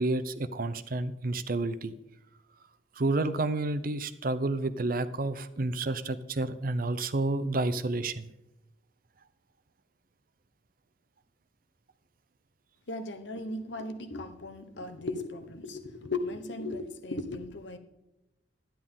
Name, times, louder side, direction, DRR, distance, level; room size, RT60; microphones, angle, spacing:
voice 1, 0.0-1.9 3.0-8.3, right 2 dB, 50° right, 0.6 m, -30 dB
voice 2, 12.9-17.8, left 2 dB, 75° left, 1.1 m, -37 dB
11.0 x 10.0 x 3.7 m
head